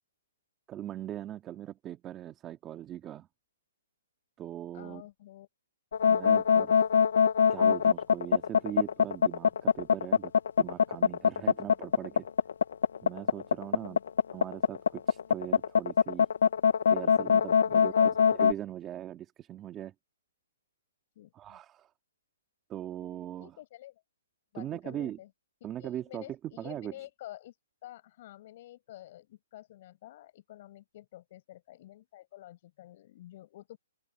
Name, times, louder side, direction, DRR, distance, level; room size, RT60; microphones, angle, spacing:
voice 1, 0.7-3.3 4.4-5.0 6.1-6.8 7.5-10.3 10.6-12.2 13.0-14.0 14.3-16.3 16.9-19.9 21.3-21.9 22.7-23.5 24.6-25.2 25.6-26.9, right 11 dB, 15° right, 2.1 m, -40 dB
voice 2, 4.7-5.5 11.6-11.7 13.8-14.0 17.6-17.8 21.2-21.6 23.4-24.0 24.5-25.3 25.8-27.5 27.8-33.8, left 14 dB, 40° left, 7.9 m, -49 dB
sound 1, 5.9-18.5, left 7 dB, 65° left, 0.6 m, -23 dB
open air
hypercardioid pair, 160°, 0 cm